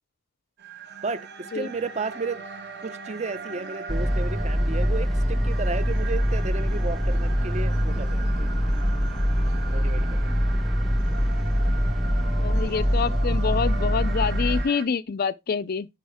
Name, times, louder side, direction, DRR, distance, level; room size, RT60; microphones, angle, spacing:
sound 1, 0.6-14.9, right 5 dB, 55° right, 1.4 m, -40 dB
voice 1, 1.0-2.4 2.8-8.5 9.7-10.2, right 4 dB, 35° right, 0.7 m, -33 dB
sound 2, 3.9-14.6, equal, ahead, 0.7 m, -24 dB
voice 2, 12.4-15.9, left 5 dB, 50° left, 0.4 m, -27 dB
10.5 x 4.2 x 3.5 m
head